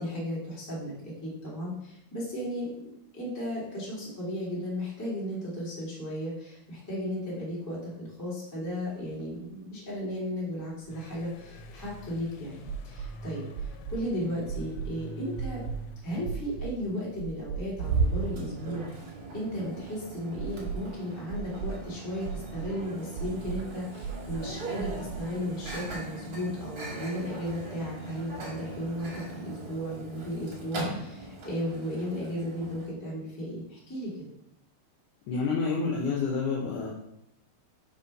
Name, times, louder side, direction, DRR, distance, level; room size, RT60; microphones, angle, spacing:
voice 1, 0.0-2.7 3.1-15.6 16.0-34.1, equal, 10° left, -7 dB, 1.1 m, -35 dB
sound 1, 8.9-9.0 9.2-9.3 10.9-12.1 12.7-13.1 13.6-14.0 14.5-15.0 15.4-15.8 16.3-16.8 17.2-18.0 18.3-18.4 20.4-20.9 21.3-21.8 22.2-22.7 23.2-23.6 24.0-24.5 24.8-25.3 25.6-26.0, right 7 dB, 85° right, 2.5 m, -36 dB
sound 2, 10.9-18.5, right 1 dB, 90° left, 2.6 m, -45 dB
Microwave oven, 17.8-32.9, right 3 dB, 50° right, 1.6 m, -37 dB
voice 2, 35.3-36.9, left 4 dB, 70° left, -2 dB, 2.0 m, -28 dB
5.0 x 4.2 x 5.3 m, 0.78 s
omnidirectional pair, 4.4 m